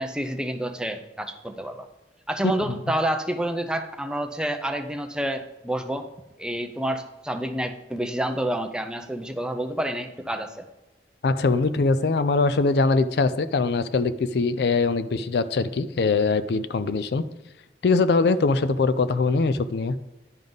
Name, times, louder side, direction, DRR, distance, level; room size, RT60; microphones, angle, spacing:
voice 1, 0.0-1.9 2.3-6.1 6.4-10.7, right 1 dB, 5° right, 6 dB, 0.5 m, -29 dB
voice 2, 2.4-2.8 11.2-17.3 17.8-20.0, left 3 dB, 65° left, 13 dB, 0.4 m, -22 dB
10.5 x 5.3 x 3.9 m, 1.1 s
head